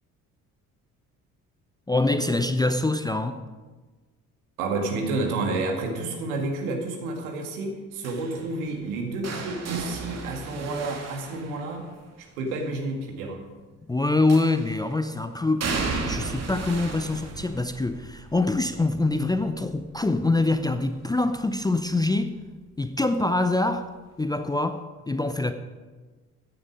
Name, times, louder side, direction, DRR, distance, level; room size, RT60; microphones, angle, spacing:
voice 1, 1.9-3.4 13.9-22.4 22.8-23.9 24.2-25.5, left 2 dB, 10° left, 0.6 m, -25 dB
voice 2, 4.6-11.9 12.2-13.5, right 2 dB, 70° right, 2.2 m, -30 dB
sound 1, 8.0-12.1 14.3-14.9 15.6-21.4 21.8-22.2 23.4-23.5, right 4 dB, 35° right, 2.0 m, -35 dB
15.0 x 9.9 x 5.1 m
figure-of-eight pair, 50°, 45 cm